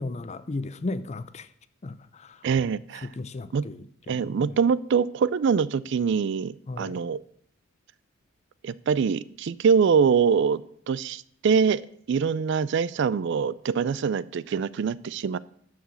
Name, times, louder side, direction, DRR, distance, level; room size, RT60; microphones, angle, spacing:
voice 1, 0.0-1.5 1.8-2.4 3.0-4.5 6.7-7.0, left 2 dB, 35° left, 0.5 m, -35 dB
voice 2, 2.4-3.1 3.5-3.6 4.1-7.2 8.6-11.8 12.1-15.4, right 6 dB, 60° right, 0.4 m, -24 dB
12.0 x 4.8 x 7.5 m
head